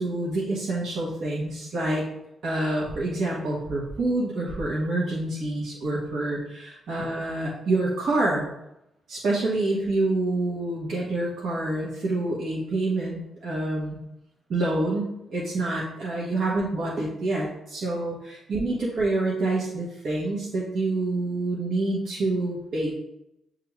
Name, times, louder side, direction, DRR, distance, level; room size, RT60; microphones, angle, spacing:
voice 1, 0.0-2.0 2.4-8.5 9.1-14.0 14.5-22.9, right 2 dB, 65° right, -5 dB, 0.9 m, -27 dB
6.6 x 2.5 x 3.1 m, 0.84 s
hypercardioid pair, 45°, 0 cm